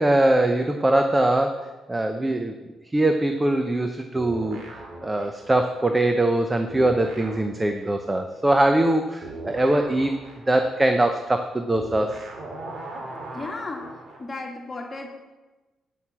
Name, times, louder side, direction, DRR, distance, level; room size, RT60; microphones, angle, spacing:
voice 1, 0.0-2.6 2.9-10.2 10.5-12.2, right 1 dB, 15° right, 6 dB, 0.7 m, -22 dB
sound 1, 4.2-6.4 6.7-14.3, right 2 dB, 55° right, 2.4 m, -39 dB
voice 2, 13.3-13.9 14.2-15.1, left 3 dB, 30° left, 0 dB, 2.3 m, -34 dB
9.1 x 6.4 x 7.2 m, 1.2 s
cardioid pair, 90°, 0 cm